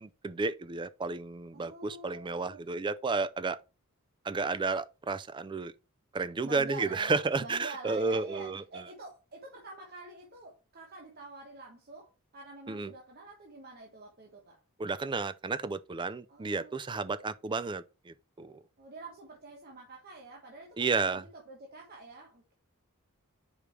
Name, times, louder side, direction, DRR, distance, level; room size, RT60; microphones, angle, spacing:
voice 1, 0.0-3.6 4.2-5.7 6.1-8.6 12.7-12.9 14.8-18.6 20.8-21.2, right 4 dB, 20° right, 0.4 m, -32 dB
voice 2, 1.5-2.6 6.4-14.6 16.3-16.8 18.8-22.5, right 2 dB, 45° right, 1.2 m, -47 dB
5.0 x 4.9 x 4.3 m
head